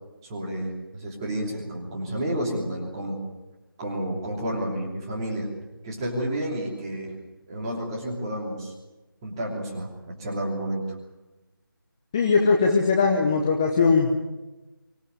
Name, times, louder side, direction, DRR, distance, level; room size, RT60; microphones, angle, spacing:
voice 1, 0.2-3.2 3.8-5.5 5.8-7.1 7.5-8.7 9.2-10.8, right 1 dB, 10° right, -1 dB, 2.9 m, -30 dB
voice 2, 12.1-14.1, left 4 dB, 10° left, 1 dB, 0.9 m, -20 dB
25.0 x 17.0 x 9.4 m, 1.1 s
figure-of-eight pair, 165°, 12 cm